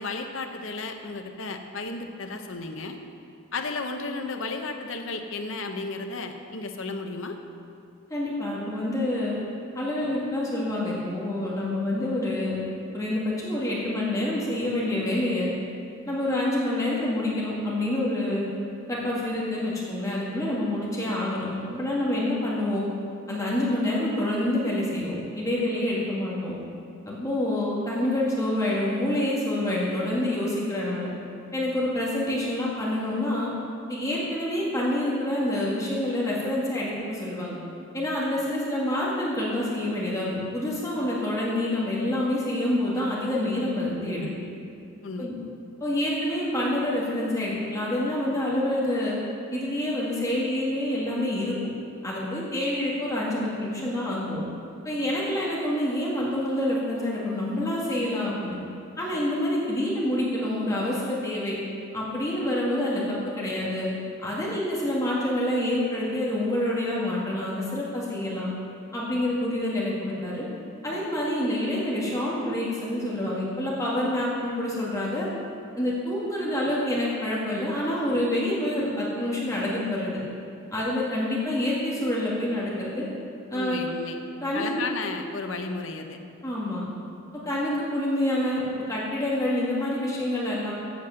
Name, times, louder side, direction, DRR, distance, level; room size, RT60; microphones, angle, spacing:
voice 1, 0.0-3.0 3.5-7.4 45.0-45.3 83.5-84.2 84.5-86.2, left 3 dB, 65° left, 5 dB, 0.9 m, -33 dB
voice 2, 8.1-9.4 9.8-12.6 12.9-15.5 16.1-18.5 18.9-22.8 23.3-26.6 27.1-31.1 31.5-33.5 33.9-37.6 37.9-44.3 45.2-45.4 45.8-49.2 49.5-51.6 52.0-54.4 54.8-58.6 59.0-61.6 61.9-63.9 64.2-68.5 68.9-70.5 70.8-75.3 75.8-80.2 80.7-83.1 83.5-83.8 84.4-84.8 86.4-86.8 87.4-90.7, left 1 dB, 15° left, -6 dB, 1.9 m, -27 dB
8.2 x 8.1 x 7.5 m, 2.5 s
head